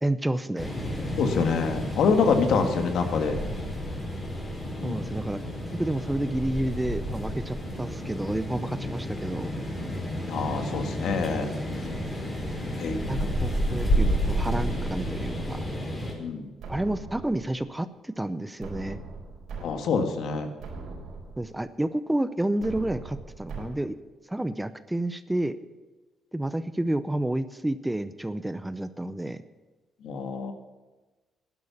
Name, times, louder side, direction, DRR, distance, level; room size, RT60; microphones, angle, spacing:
voice 1, 0.0-0.7 4.8-5.4 5.7-9.6 13.1-15.6 16.7-19.0 21.4-24.0 24.3-25.6 26.3-29.4, right 1 dB, 10° right, 13 dB, 0.6 m, -30 dB
sound 1, 0.6-16.1, equal, 20° left, 4.6 m, -31 dB
voice 2, 1.2-3.4 4.8-5.0 10.3-11.5 12.7-13.0 16.2-16.5 19.6-20.5 30.0-30.5, left 5 dB, 70° left, 6 dB, 1.9 m, -26 dB
sound 2, 16.6-17.6 18.6-19.6 20.1-20.2 20.6-21.6 22.6-23.6, right 4 dB, 80° right, 4.4 m, -40 dB
11.5 x 11.0 x 7.2 m, 1.2 s
cardioid pair, 115°, 0 cm